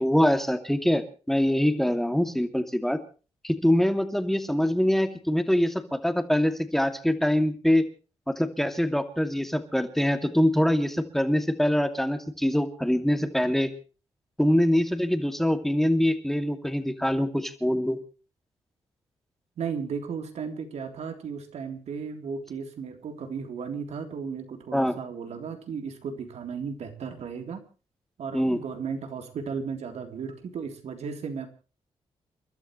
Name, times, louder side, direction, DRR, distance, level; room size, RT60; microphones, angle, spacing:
voice 1, 0.0-3.0 3.4-7.8 8.3-13.7 14.4-18.0 24.7-24.9 28.3-28.6, equal, 5° left, 7 dB, 2.5 m, -24 dB
voice 2, 19.6-27.6 28.2-31.5, right 6 dB, 75° right, 5 dB, 3.6 m, -35 dB
30.0 x 12.5 x 3.2 m, 0.36 s
cardioid pair, 85°, 11 cm